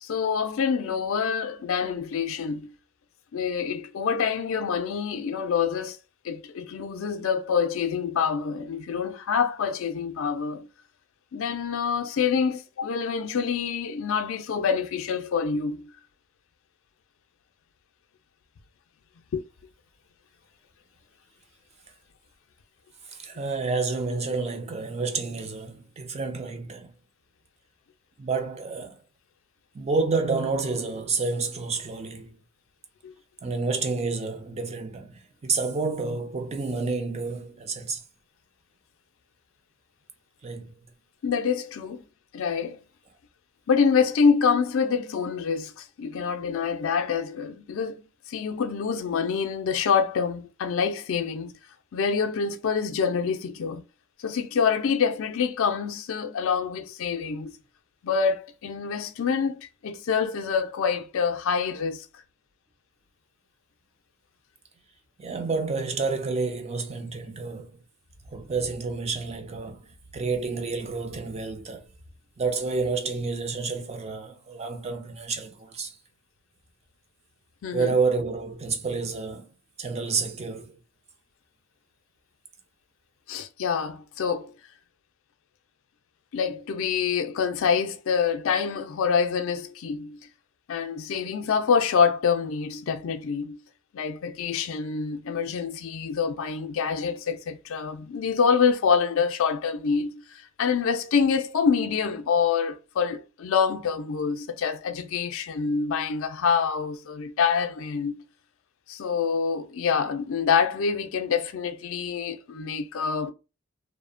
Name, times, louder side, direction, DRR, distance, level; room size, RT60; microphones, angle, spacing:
voice 1, 0.0-2.7 3.3-6.0 6.2-10.7 11.3-15.9 19.3-19.4 33.0-33.1 41.2-42.0 42.3-42.8 43.7-51.5 51.9-53.8 54.2-57.5 58.0-62.1 77.6-77.9 83.3-84.5 86.3-90.2 90.7-93.6 93.9-108.2 108.9-113.3, left 6 dB, 65° left, 0.4 m, -26 dB
voice 2, 23.1-26.9 28.2-29.0 29.7-32.3 33.4-38.0 40.4-40.7 65.2-67.7 68.3-69.9 70.1-71.8 72.4-76.0 77.7-79.5 79.8-80.8, right 4 dB, 30° right, 0.4 m, -29 dB
2.7 x 2.0 x 2.4 m
head